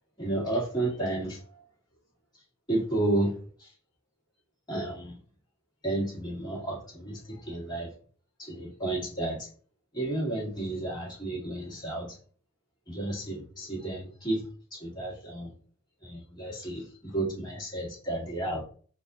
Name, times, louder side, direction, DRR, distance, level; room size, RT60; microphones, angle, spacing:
voice 1, 0.2-1.6 2.7-3.7 4.7-5.2 5.8-7.9 8.4-9.5 9.9-12.2 12.9-15.5 16.0-18.6, right 2 dB, 20° left, -6 dB, 1.8 m, -32 dB
4.0 x 2.5 x 3.9 m, 0.43 s
head